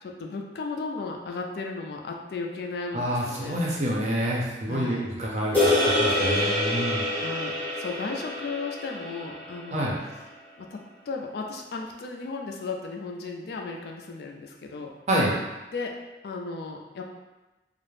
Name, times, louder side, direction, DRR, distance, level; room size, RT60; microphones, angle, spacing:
voice 1, 0.0-3.6 4.7-5.0 7.1-9.9 10.6-14.9 15.7-15.9 16.2-17.0, left 4 dB, 60° left, 1 dB, 0.3 m, -35 dB
voice 2, 2.9-5.6 6.0-7.0 9.7-9.9 15.1-15.3, right 1 dB, 40° right, -4 dB, 0.5 m, -27 dB
sound 1, 5.5-10.0, left 1 dB, 10° left, 0.6 m, -26 dB
2.4 x 2.0 x 3.1 m, 1.1 s
head